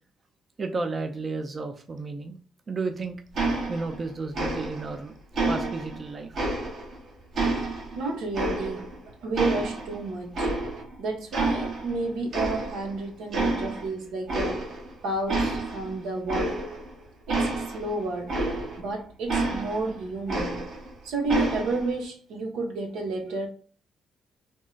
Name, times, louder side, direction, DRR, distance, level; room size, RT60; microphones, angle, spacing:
voice 1, 0.6-2.4 2.7-3.2 3.7-5.1 5.5-6.4, right 3 dB, 35° right, 0.5 m, -32 dB
sound 1, 3.3-4.1 4.3-5.0 5.3-7.0 7.3-9.0 9.3-11.0 11.3-12.0 12.3-13.0 13.3-13.9 14.3-14.9 15.3-18.9 19.3-20.9 21.3-21.9, right 2 dB, 60° right, 1.2 m, -29 dB
voice 2, 7.6-9.0 9.2-10.5 11.0-14.7 15.0-16.6 17.3-18.4 18.8-20.6 21.0-23.5, right 2 dB, 85° right, 1.0 m, -31 dB
3.6 x 2.1 x 3.9 m
cardioid pair, 90°, 0 cm